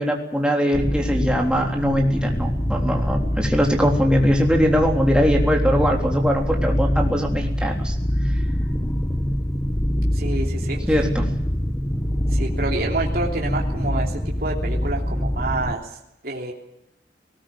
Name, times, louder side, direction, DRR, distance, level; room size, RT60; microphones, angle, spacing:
voice 1, 0.0-7.9 10.9-11.3, equal, 5° right, 0 dB, 3.6 m, -21 dB
sound 1, 0.7-15.8, equal, 15° left, 0.9 m, -24 dB
voice 2, 10.1-10.9 12.3-15.9 16.2-16.5, right 2 dB, 50° right, -1 dB, 3.2 m, -28 dB
19.5 x 19.0 x 8.9 m, 0.85 s
head